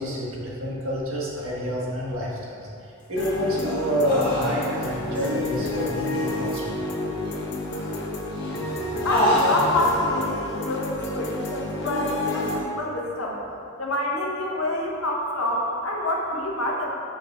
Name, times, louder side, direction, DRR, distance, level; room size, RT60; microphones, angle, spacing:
voice 1, 0.0-2.7 3.1-6.8, equal, 80° right, -5 dB, 1.4 m, -28 dB
sound 1, 3.1-12.6, left 2 dB, 55° left, 0.9 m, -30 dB
sound 2, 3.2-4.9 5.1-5.7 6.1-6.6 7.2-8.0 8.3-10.1, left 1 dB, 20° left, 1.3 m, -29 dB
voice 2, 9.0-13.4 13.8-16.9, left 1 dB, 80° left, -1 dB, 1.0 m, -26 dB
8.6 x 6.1 x 2.4 m, 2.6 s
head